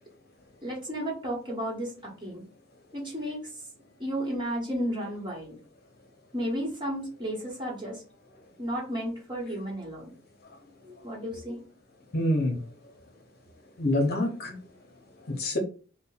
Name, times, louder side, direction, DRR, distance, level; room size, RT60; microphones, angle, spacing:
voice 1, 0.6-2.4 2.9-3.5 4.0-5.6 6.3-8.0 8.6-10.1 10.8-11.6, equal, 25° right, -2 dB, 1.2 m, -33 dB
voice 2, 12.1-12.7 13.8-14.6 15.3-15.6, left 1 dB, 50° left, 2 dB, 0.9 m, -27 dB
3.3 x 2.2 x 4.0 m, 0.38 s
head